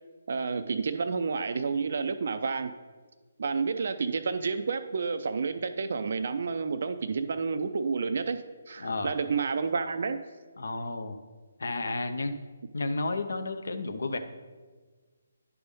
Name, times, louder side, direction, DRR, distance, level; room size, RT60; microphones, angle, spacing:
voice 1, 0.3-2.7 3.4-10.2, right 5 dB, 60° right, 8 dB, 0.4 m, -30 dB
voice 2, 8.8-9.1 10.6-11.2 11.6-12.4 12.7-14.2, left 3 dB, 70° left, 8 dB, 0.7 m, -32 dB
10.0 x 3.5 x 5.2 m, 1.4 s
figure-of-eight pair, 145°, 0 cm